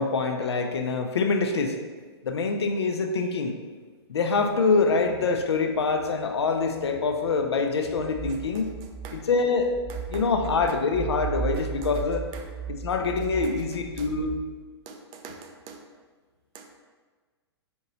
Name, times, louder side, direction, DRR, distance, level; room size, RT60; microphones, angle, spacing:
voice 1, 0.0-1.8 2.2-3.6 4.1-8.7 9.1-9.7 10.1-12.3 12.7-14.4, left 4 dB, 75° left, 5 dB, 0.4 m, -25 dB
sound 1, 4.8-14.4, right 7 dB, 5° right, 0.9 m, -37 dB
voice 2, 8.3-8.7 9.0-9.2 9.9-10.3 10.7-10.8 11.5-11.6 11.9-12.0 12.3-12.5 13.4-13.5 14.0-14.1 14.9-15.8 16.5-16.7, right 6 dB, 30° right, 4 dB, 0.4 m, -44 dB
4.4 x 2.8 x 2.8 m, 1.4 s
figure-of-eight pair, 115°, 14 cm